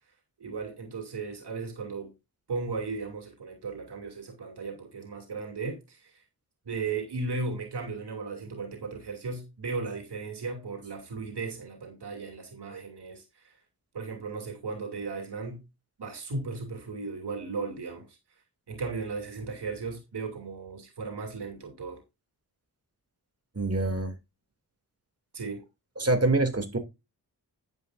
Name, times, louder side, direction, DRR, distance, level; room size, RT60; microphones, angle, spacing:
voice 1, 0.4-2.1 2.5-6.1 6.7-13.5 13.9-15.6 16.0-18.2 18.7-22.0 25.3-25.6, right 4 dB, 90° right, 2.8 m, -36 dB
voice 2, 23.5-24.1 26.0-26.8, right 2 dB, 40° right, 2.7 m, -25 dB
11.0 x 9.9 x 2.6 m
wide cardioid pair, 75°, 39 cm